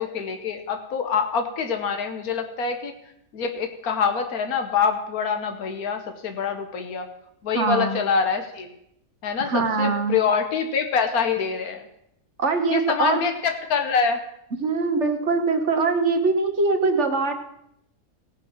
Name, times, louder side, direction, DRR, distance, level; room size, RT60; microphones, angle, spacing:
voice 1, 0.0-2.9 3.3-7.1 7.4-8.7 9.2-11.8 12.7-14.2, left 6 dB, 85° left, 6 dB, 1.5 m, -25 dB
voice 2, 7.5-8.0 9.5-10.1 12.4-13.2 14.6-17.3, right 4 dB, 55° right, 5 dB, 1.4 m, -22 dB
17.0 x 5.8 x 6.0 m, 0.77 s
omnidirectional pair, 1.5 m